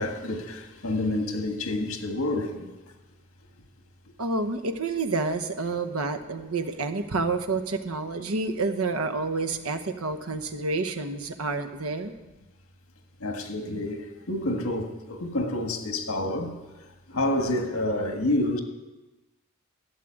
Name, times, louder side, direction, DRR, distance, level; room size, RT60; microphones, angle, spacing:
voice 1, 0.0-2.7 13.2-16.6 17.1-18.6, left 1 dB, 75° left, 1.6 m, -28 dB
voice 2, 4.2-12.1, right 3 dB, 85° right, 1.0 m, -29 dB
12.0 x 7.6 x 9.0 m
head